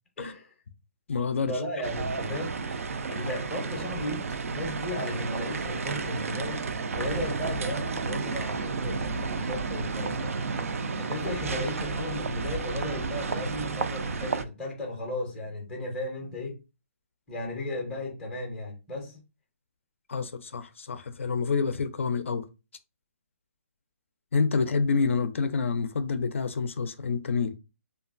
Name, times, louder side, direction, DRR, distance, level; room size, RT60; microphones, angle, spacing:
voice 1, 0.2-0.5 1.5-2.8 3.1-6.6 7.0-10.4 10.9-16.6 17.3-19.2, left 1 dB, 5° left, 0.5 m, -35 dB
voice 2, 1.1-1.6 20.1-22.5 24.3-27.5, left 5 dB, 60° left, 0.4 m, -28 dB
sound 1, 1.8-14.4, right 4 dB, 75° right, 0.4 m, -32 dB
3.0 x 2.3 x 2.4 m
hypercardioid pair, 175°, 8 cm